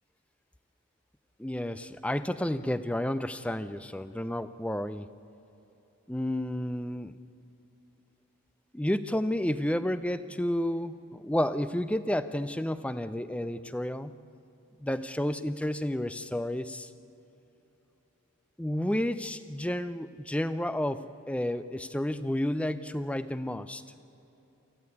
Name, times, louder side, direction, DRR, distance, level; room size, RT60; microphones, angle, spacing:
voice 1, 1.4-5.1 6.1-7.2 8.7-14.1 14.8-16.9 18.6-23.8, left 1 dB, 5° left, 13 dB, 0.5 m, -31 dB
24.5 x 15.0 x 9.6 m, 3.0 s
head